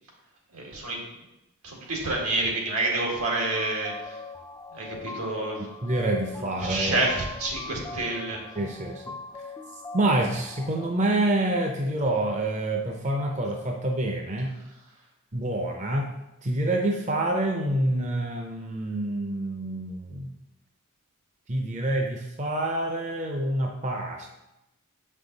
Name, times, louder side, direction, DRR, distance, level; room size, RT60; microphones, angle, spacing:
voice 1, 0.5-1.0 1.6-4.2 4.7-5.7 6.6-8.4, right 2 dB, 85° right, -1 dB, 1.9 m, -28 dB
sound 1, 2.8-10.8, left 3 dB, 15° left, 0.3 m, -41 dB
voice 2, 5.8-7.0 8.6-9.2 9.9-14.6 15.3-16.2 16.4-20.3 21.5-24.3, right 1 dB, 35° right, 2 dB, 0.6 m, -27 dB
6.9 x 5.5 x 3.9 m, 0.92 s
head